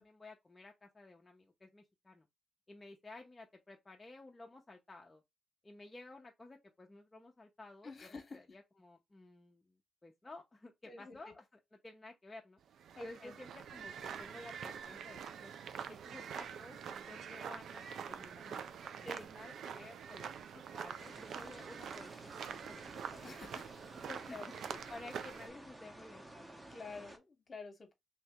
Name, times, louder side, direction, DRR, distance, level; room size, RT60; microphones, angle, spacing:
voice 1, 0.0-2.3 2.7-5.2 5.6-9.7 10.0-11.4 11.8-12.6 13.0-15.5 15.9-23.6 24.3-26.6, left 2 dB, 25° left, 0.7 m, -54 dB
voice 2, 7.8-8.4 10.9-11.3 13.0-13.3 19.0-19.3 23.2-23.6 24.1-24.5 26.7-27.9, left 3 dB, 45° left, 1.1 m, -48 dB
sound 1, 12.7-25.5, right 7 dB, 70° right, 0.4 m, -46 dB
sound 2, 21.0-27.2, right 1 dB, 15° right, 1.0 m, -53 dB
2.9 x 2.6 x 3.4 m
supercardioid pair, 55°, 0 cm